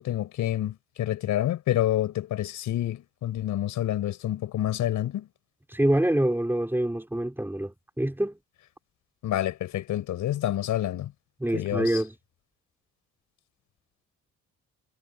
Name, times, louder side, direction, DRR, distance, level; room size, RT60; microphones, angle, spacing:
voice 1, 0.0-5.3 9.2-11.1 11.5-12.0, left 12 dB, 80° left, 4.7 m, -28 dB
voice 2, 5.7-8.4 11.4-12.2, right 1 dB, 5° right, 3.7 m, -26 dB
cardioid pair, 90°, 30 cm